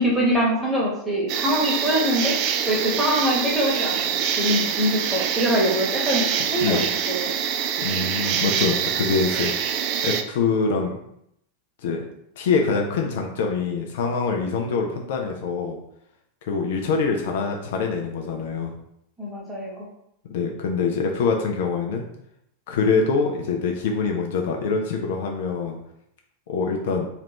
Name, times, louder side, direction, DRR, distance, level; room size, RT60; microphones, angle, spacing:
voice 1, 0.0-2.3 2.7-4.1 4.4-7.3 19.2-19.8, equal, 5° right, -5 dB, 1.3 m, -23 dB
sound 1, 1.3-10.2, right 8 dB, 40° right, 0.3 m, -25 dB
voice 2, 7.8-9.5 10.0-11.0 11.8-12.0 12.4-15.8 16.5-18.7 20.2-22.1 22.7-25.8 26.5-27.1, left 4 dB, 55° left, 2 dB, 0.5 m, -24 dB
3.3 x 2.9 x 3.0 m, 0.75 s
figure-of-eight pair, 90°, 0 cm